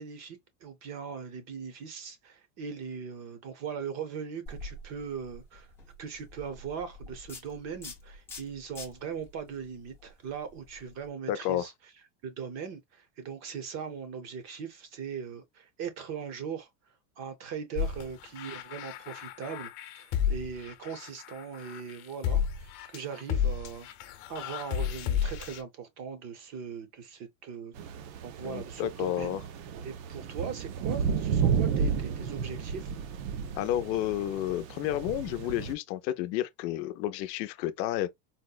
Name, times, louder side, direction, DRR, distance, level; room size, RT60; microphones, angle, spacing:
voice 1, 0.0-5.7 6.0-11.7 12.2-16.7 17.2-19.7 20.0-29.4 29.8-32.9, right 6 dB, 35° right, 0.6 m, -40 dB
sound 1, 4.5-11.1, left 2 dB, 5° left, 0.4 m, -47 dB
voice 2, 11.3-11.7 28.4-29.4 33.5-38.1, left 13 dB, 90° left, 0.6 m, -31 dB
sound 2, 17.8-25.6, left 8 dB, 45° left, 0.8 m, -32 dB
sound 3, 27.8-35.7, right 6 dB, 75° right, 0.8 m, -32 dB
4.1 x 2.0 x 2.3 m
supercardioid pair, 155°, 50 cm